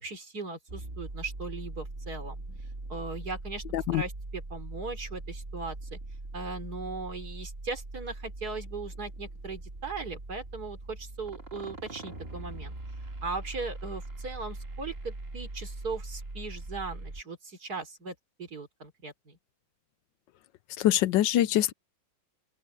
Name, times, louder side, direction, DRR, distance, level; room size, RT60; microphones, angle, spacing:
voice 1, 0.0-2.4 2.9-3.6 3.9-6.0 6.3-12.7 13.2-19.4, right 3 dB, 55° right, 3.9 m, -38 dB
sound 1, 0.7-17.2, right 2 dB, 30° right, 2.7 m, -41 dB
voice 2, 20.8-21.7, left 13 dB, 80° left, 1.3 m, -24 dB
open air
omnidirectional pair, 2.0 m